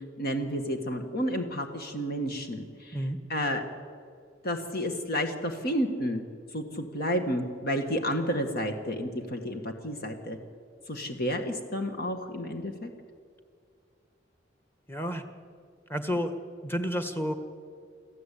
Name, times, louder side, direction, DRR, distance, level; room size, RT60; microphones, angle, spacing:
voice 1, 0.2-3.0 3.3-3.6 4.4-6.2 6.5-10.4 10.9-12.9, equal, 55° left, 5 dB, 1.8 m, -31 dB
voice 2, 14.9-15.2 15.9-16.4 16.6-17.3, equal, 10° left, 8 dB, 1.6 m, -30 dB
27.0 x 14.5 x 8.5 m, 2.2 s
head